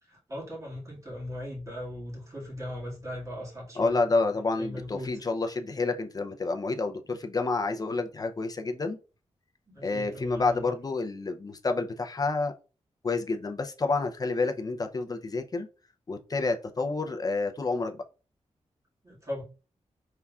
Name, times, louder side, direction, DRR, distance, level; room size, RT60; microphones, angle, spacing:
voice 1, 0.0-4.0 4.6-5.3 9.7-10.7 19.0-19.4, left 1 dB, 25° right, 1.9 m, -39 dB
voice 2, 3.8-9.0 9.8-12.5 13.0-15.7 16.1-18.0, left 3 dB, 30° left, 0.5 m, -29 dB
5.5 x 3.5 x 2.3 m
wide cardioid pair, 175°, 12 cm